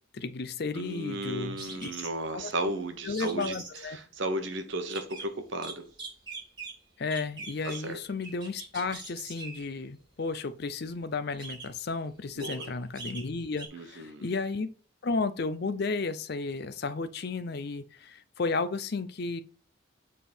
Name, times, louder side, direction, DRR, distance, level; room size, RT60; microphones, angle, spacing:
voice 1, 0.1-1.9 2.3-2.5 3.0-4.0 7.0-14.7 15.0-19.4, left 4 dB, 50° left, 0.5 m, -33 dB
voice 2, 0.7-3.6 3.9-5.9 7.6-8.0 12.4-12.7 13.7-14.3, right 2 dB, 60° right, 0.9 m, -34 dB
sound 1, 1.6-2.3 3.1-3.8 4.8-5.2 5.6-6.7 7.1-7.9 8.2-9.6 10.8-10.9 11.3-11.8 12.2-12.7 12.9-13.3 13.6-13.7, right 3 dB, 20° right, 2.4 m, -42 dB
7.3 x 3.6 x 4.4 m
head